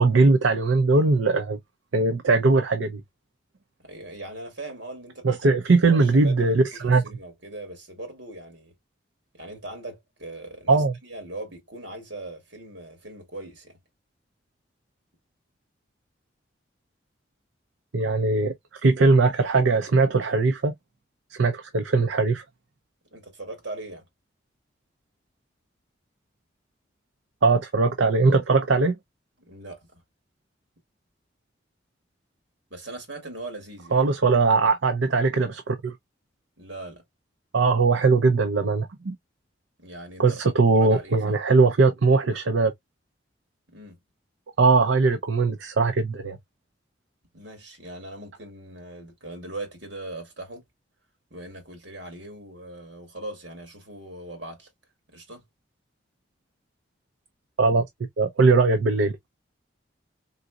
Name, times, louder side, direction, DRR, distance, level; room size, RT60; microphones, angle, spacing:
voice 1, 0.0-1.6 1.9-3.0 5.2-7.0 10.7-10.9 17.9-20.7 21.3-22.4 27.4-28.9 33.9-35.9 37.5-39.2 40.2-42.7 44.6-46.4 57.6-57.8 58.2-59.2, right 3 dB, 90° right, 0.6 m, -20 dB
voice 2, 3.8-5.3 5.7-8.7 9.3-13.8 23.1-24.1 29.4-30.0 32.7-34.1 36.6-37.0 39.8-40.4 40.7-41.4 43.7-44.0 47.3-50.6 51.3-54.7 55.1-55.4, right 2 dB, 75° right, 2.5 m, -40 dB
4.0 x 3.9 x 2.3 m
head